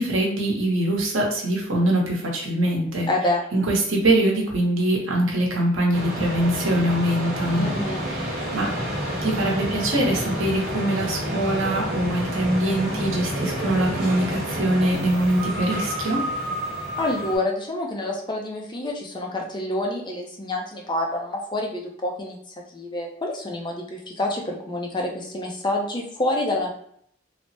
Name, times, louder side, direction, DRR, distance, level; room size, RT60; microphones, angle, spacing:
voice 1, 0.0-3.1 3.5-7.7 8.1-8.7 9.2-16.2, right 1 dB, 75° right, -1 dB, 0.8 m, -23 dB
voice 2, 3.1-3.4 7.5-8.0 17.0-22.4 22.7-26.7, left 1 dB, 20° left, 0 dB, 0.5 m, -27 dB
sound 1, 5.9-17.4, equal, 50° right, 1.1 m, -29 dB
3.2 x 2.0 x 2.7 m, 0.66 s
head